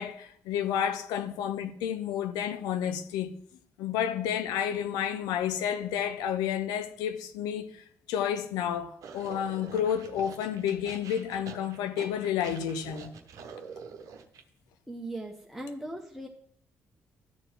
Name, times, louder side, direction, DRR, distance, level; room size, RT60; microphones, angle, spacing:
voice 1, 0.0-3.4 3.8-13.1, left 9 dB, 60° left, 0.8 m, -31 dB
sound 1, 9.0-14.4, right 6 dB, 50° right, 1.0 m, -46 dB
voice 2, 14.9-16.3, right 1 dB, ahead, 1.2 m, -39 dB
11.5 x 4.5 x 7.4 m
figure-of-eight pair, 40°, 7 cm